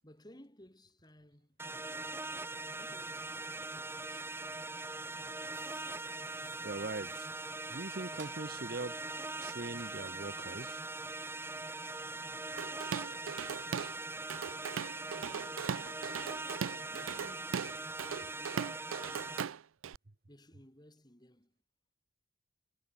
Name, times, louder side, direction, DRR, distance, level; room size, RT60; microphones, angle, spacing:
voice 1, 0.0-2.2 2.8-4.3 15.2-16.1 16.9-19.6 20.3-21.5, equal, 20° left, 3.5 m, -59 dB
sound 1, 1.6-19.4, right 2 dB, 10° right, 1.3 m, -41 dB
sound 2, 5.5-11.2, right 7 dB, 65° right, 3.0 m, -61 dB
voice 2, 6.6-7.3 7.7-8.9 9.4-10.8, right 2 dB, 50° right, 1.0 m, -41 dB
Drum kit / Drum, 12.6-14.0 14.3-20.0, right 7 dB, 90° right, 0.5 m, -39 dB
head